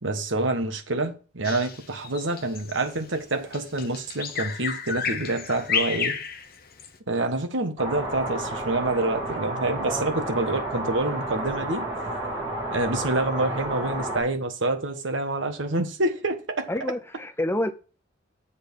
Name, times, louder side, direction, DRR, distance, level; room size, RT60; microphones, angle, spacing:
voice 1, 0.0-6.2 7.1-11.9 12.7-16.7, right 2 dB, 70° right, 1.3 m, -27 dB
Bird vocalization bird call bird song, 1.4-7.0, left 6 dB, 50° left, 0.9 m, -31 dB
sound 1, 7.8-14.2, right 1 dB, 30° right, 4.1 m, -31 dB
voice 2, 16.7-17.7, left 1 dB, 10° left, 0.5 m, -28 dB
7.9 x 4.2 x 6.8 m
head